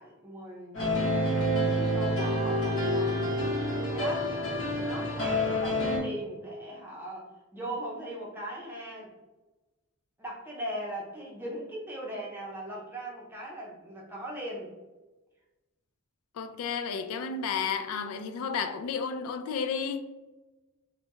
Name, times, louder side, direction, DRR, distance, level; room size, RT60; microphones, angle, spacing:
voice 1, 0.0-4.3 4.8-9.1 10.2-14.7, right 1 dB, 10° right, 0.6 m, -40 dB
sound 1, 0.7-6.0, equal, 60° left, 1.1 m, -28 dB
voice 2, 16.3-20.0, left 6 dB, 80° left, 0.3 m, -32 dB
3.3 x 2.2 x 2.9 m
head